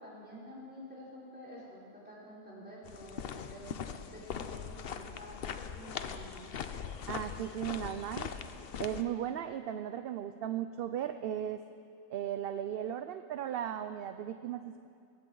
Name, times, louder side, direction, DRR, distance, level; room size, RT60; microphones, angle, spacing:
voice 1, 0.0-3.7 4.0-6.5, equal, 10° right, -7 dB, 4.5 m, -49 dB
sound 1, 2.8-9.0, left 7 dB, 60° left, 0.9 m, -41 dB
voice 2, 7.1-8.3 8.8-11.6 12.1-14.9, right 10 dB, 65° right, 9 dB, 0.7 m, -36 dB
21.5 x 16.5 x 3.9 m, 2.4 s
omnidirectional pair, 1.2 m